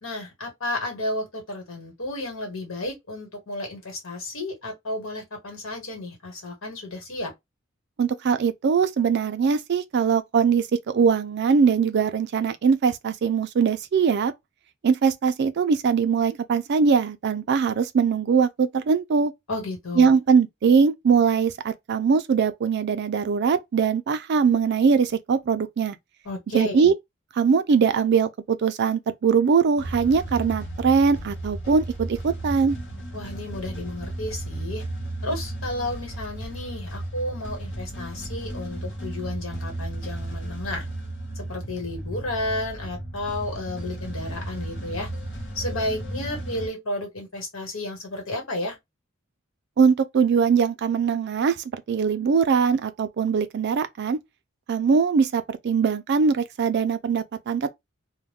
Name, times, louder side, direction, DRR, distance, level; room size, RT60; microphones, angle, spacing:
voice 1, 0.0-7.3 19.5-20.1 26.2-26.9 33.1-34.8 35.2-40.9 41.3-45.1 45.5-48.8, left 1 dB, 85° left, 1.4 m, -32 dB
voice 2, 8.0-14.3 14.8-19.3 20.0-26.0 26.5-26.9 27.4-32.8 49.8-54.2 54.7-57.7, right 6 dB, 55° right, 0.4 m, -21 dB
sound 1, 29.8-46.7, right 1 dB, 65° left, 1.1 m, -34 dB
2.3 x 2.1 x 3.3 m
head